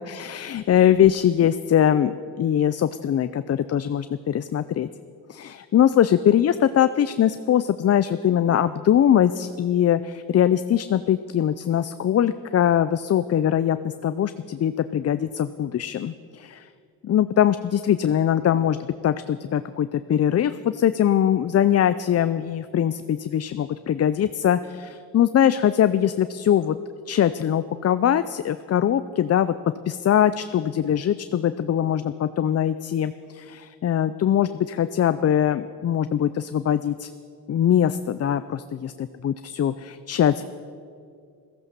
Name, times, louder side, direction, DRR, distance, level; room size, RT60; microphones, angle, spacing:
voice 1, 0.1-4.9 5.3-16.7 17.0-18.8 19.0-26.8 27.1-29.5 29.9-37.1 37.5-40.4, left 10 dB, 45° left, 12 dB, 0.5 m, -22 dB
15.5 x 14.0 x 6.7 m, 2.3 s
cardioid pair, 110°, 36 cm